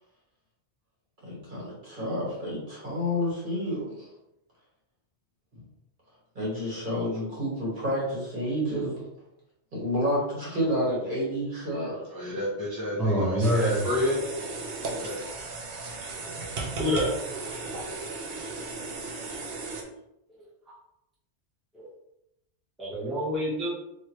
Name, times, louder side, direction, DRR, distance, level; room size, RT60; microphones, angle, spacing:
voice 1, 1.2-4.1 6.3-9.1 9.7-12.4, equal, 45° right, -6 dB, 1.5 m, -30 dB
voice 2, 12.1-13.3 13.6-14.2 14.7-15.2, left 1 dB, 25° right, -6 dB, 0.6 m, -30 dB
voice 3, 13.0-13.9 16.8-17.2 20.3-20.4 21.7-21.9 22.8-23.7, equal, ahead, -7 dB, 0.9 m, -26 dB
sound 1, 13.4-19.8, right 3 dB, 65° right, 0.8 m, -36 dB
3.1 x 3.1 x 2.9 m, 0.83 s
omnidirectional pair, 1.2 m